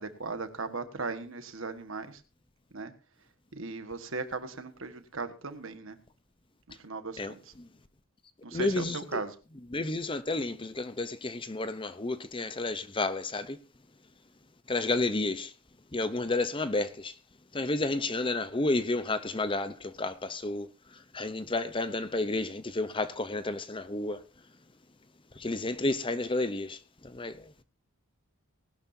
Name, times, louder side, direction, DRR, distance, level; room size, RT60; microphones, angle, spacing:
voice 1, 0.0-2.2 2.7-2.9 3.5-6.0 6.8-7.5 8.4-9.3, right 3 dB, 65° right, 1.5 m, -37 dB
voice 2, 8.5-9.2 9.7-13.6 14.7-15.5 15.9-17.1 17.5-20.7 21.1-24.2 25.4-26.8 27.0-27.5, left 2 dB, 25° left, 0.7 m, -31 dB
19.5 x 11.5 x 2.7 m
head